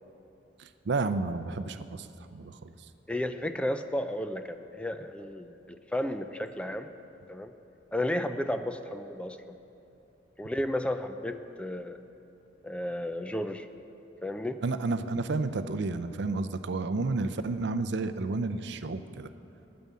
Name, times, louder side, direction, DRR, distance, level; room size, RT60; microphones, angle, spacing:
voice 1, 0.6-2.7 14.6-19.3, right 3 dB, 65° right, 11 dB, 0.5 m, -31 dB
voice 2, 3.1-6.9 7.3-7.5 7.9-9.6 10.4-12.0 12.6-13.7 14.2-14.6, left 1 dB, 5° left, 9 dB, 0.4 m, -33 dB
9.1 x 8.7 x 9.5 m, 2.8 s
head